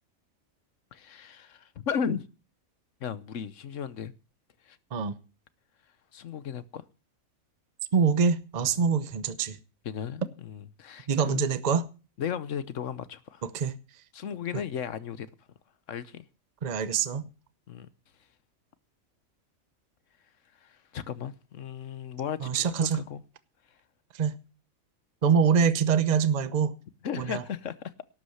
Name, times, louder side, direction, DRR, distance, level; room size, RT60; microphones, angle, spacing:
voice 1, 0.9-2.3 3.0-4.1 4.7-4.8 6.1-6.8 8.6-8.7 9.8-11.4 12.2-13.4 14.1-15.3 15.9-16.3 17.7-17.9 20.6-23.2 27.0-28.0, left 7 dB, 65° left, 1.2 m, -35 dB
voice 2, 7.9-9.6 11.1-11.9 13.5-13.7 16.6-17.3 22.4-23.0 24.1-24.4 25.2-26.8 27.2-27.4, right 6 dB, 35° right, 0.8 m, -25 dB
12.0 x 8.5 x 7.8 m
omnidirectional pair, 1.4 m